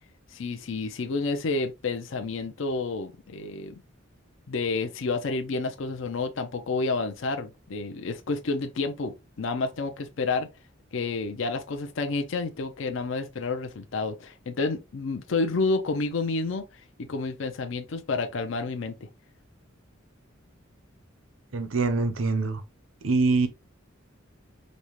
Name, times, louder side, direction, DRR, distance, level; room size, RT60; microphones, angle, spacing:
voice 1, 0.3-3.8 4.5-10.5 10.9-16.6 17.0-19.1, left 3 dB, 70° left, 0.5 m, -30 dB
voice 2, 21.5-22.6 23.0-23.5, right 3 dB, 80° right, 0.7 m, -24 dB
5.1 x 2.1 x 3.0 m
head